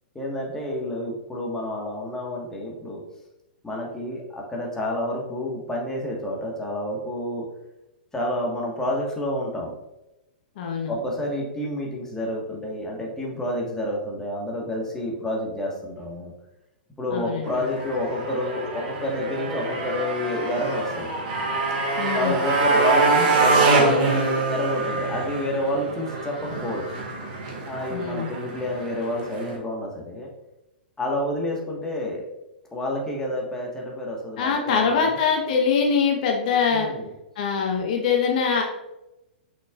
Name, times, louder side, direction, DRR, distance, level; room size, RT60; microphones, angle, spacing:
voice 1, 0.1-3.0 3.6-7.4 8.1-9.7 10.9-16.3 17.0-21.1 22.1-24.1 24.5-26.8 27.7-30.3 31.0-32.3 32.7-35.2 36.7-37.1, left 1 dB, 10° left, -2 dB, 1.6 m, -29 dB
voice 2, 10.6-10.9 17.1-17.6 22.0-22.4 27.9-28.3 34.4-36.9 37.4-38.6, left 6 dB, 55° left, 1 dB, 1.2 m, -23 dB
Motorcycle, 17.4-29.6, right 3 dB, 50° right, 1.9 m, -25 dB
6.2 x 6.0 x 2.5 m, 0.92 s
hypercardioid pair, 115°, 5 cm